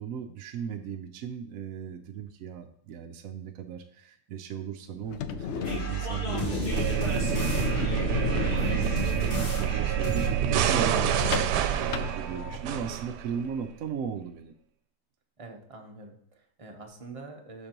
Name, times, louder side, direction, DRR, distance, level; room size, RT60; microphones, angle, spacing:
voice 1, 0.0-14.5, right 8 dB, 70° right, 5 dB, 0.9 m, -37 dB
sound 1, 5.0-12.8, left 8 dB, 75° left, 0.6 m, -34 dB
sound 2, 5.6-10.5, right 4 dB, 45° left, 2.5 m, -33 dB
sound 3, 6.7-13.5, right 10 dB, 85° right, 1.2 m, -28 dB
voice 2, 15.4-17.7, right 3 dB, 25° right, 2 dB, 0.8 m, -45 dB
12.0 x 4.4 x 3.0 m, 0.69 s
omnidirectional pair, 1.7 m